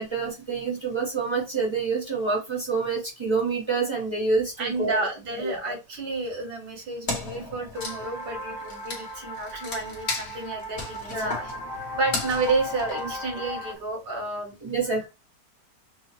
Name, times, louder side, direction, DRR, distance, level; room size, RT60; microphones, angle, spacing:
voice 1, 0.0-5.0 5.4-5.6 11.1-11.5 14.6-15.1, right 4 dB, 25° right, -1 dB, 0.7 m, -27 dB
voice 2, 4.6-11.5 11.9-14.6, right 3 dB, 70° right, -1 dB, 1.9 m, -31 dB
Wood, 7.1-13.8, left 3 dB, 40° left, 1.2 m, -35 dB
sound 1, 7.7-13.7, left 1 dB, 20° left, 0.7 m, -37 dB
6.1 x 2.1 x 2.9 m, 0.26 s
omnidirectional pair, 2.0 m